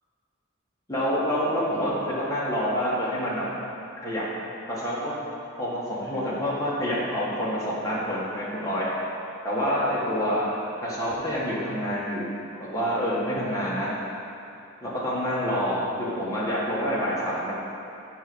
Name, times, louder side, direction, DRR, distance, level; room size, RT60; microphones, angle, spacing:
voice 1, 0.9-3.5 4.0-4.3 4.7-5.2 5.6-8.9 9.4-10.5 10.8-12.3 12.6-13.9 14.8-17.5, equal, 15° left, -8 dB, 1.8 m, -27 dB
8.0 x 5.1 x 6.2 m, 2.7 s
head